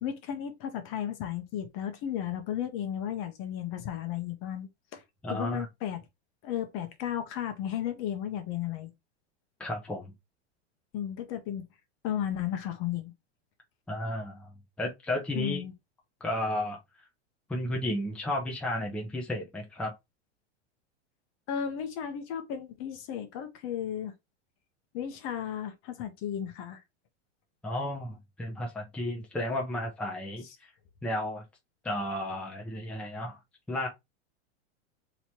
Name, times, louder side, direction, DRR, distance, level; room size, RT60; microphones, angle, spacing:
voice 1, 0.0-5.0 5.3-6.0 6.4-8.9 10.9-11.6 12.0-13.1 15.3-15.7 21.5-24.1 24.9-26.8, left 10 dB, 40° left, 0.9 m, -34 dB
voice 2, 5.2-5.6 9.6-10.1 13.9-15.6 16.2-16.8 17.5-19.9 27.6-30.7 31.0-31.4 31.8-33.4 33.7-33.9, left 1 dB, 5° left, 0.7 m, -33 dB
3.1 x 3.0 x 4.1 m
supercardioid pair, 145°, 34 cm